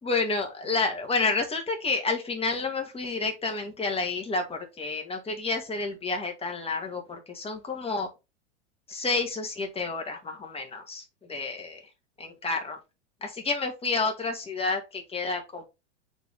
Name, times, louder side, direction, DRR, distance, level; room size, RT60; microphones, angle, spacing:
voice 1, 0.0-8.1 8.9-11.0 11.3-11.8 12.2-12.8 13.2-15.6, left 3 dB, 15° left, 2.1 m, -30 dB
6.0 x 4.4 x 3.6 m
hypercardioid pair, 105°, 36 cm